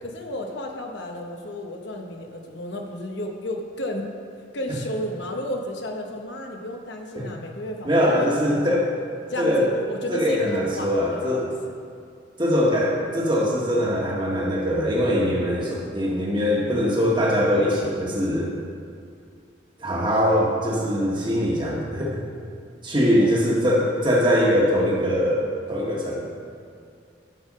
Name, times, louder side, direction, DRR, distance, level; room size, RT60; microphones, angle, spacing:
voice 1, 0.0-4.1 4.5-8.8 9.3-11.7 23.2-23.5, left 1 dB, 70° left, 2 dB, 1.0 m, -33 dB
voice 2, 7.8-8.9 9.4-9.7 10.1-11.4 12.4-18.5 19.8-22.2 22.8-26.2, equal, 25° right, -4 dB, 1.6 m, -22 dB
10.5 x 5.5 x 5.4 m, 2.4 s
head